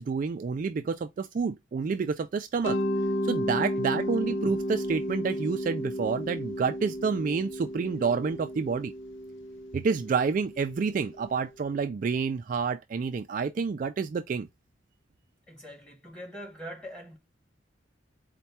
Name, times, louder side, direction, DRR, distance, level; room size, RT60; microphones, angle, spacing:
voice 1, 0.0-2.8 3.2-8.9 9.7-14.5, right 5 dB, 45° right, 0.3 m, -29 dB
Mallet percussion, 2.6-11.4, equal, 85° left, 0.6 m, -33 dB
voice 2, 15.5-17.2, equal, 5° left, 1.6 m, -43 dB
4.4 x 2.2 x 4.1 m
head